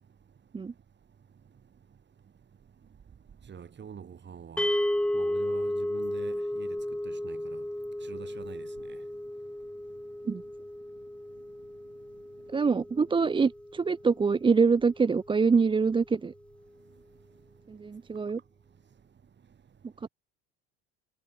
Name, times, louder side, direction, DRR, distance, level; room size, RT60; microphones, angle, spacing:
voice 1, 3.5-4.7 5.1-6.8 7.1-7.6 8.1-8.7, right 7 dB, 30° right, 4.3 m, -45 dB
sound 1, 4.6-14.9, left 1 dB, 5° left, 3.5 m, -34 dB
voice 2, 12.5-16.3 17.7-18.4, right 5 dB, 15° right, 0.6 m, -25 dB
supercardioid pair, 90°, 33 cm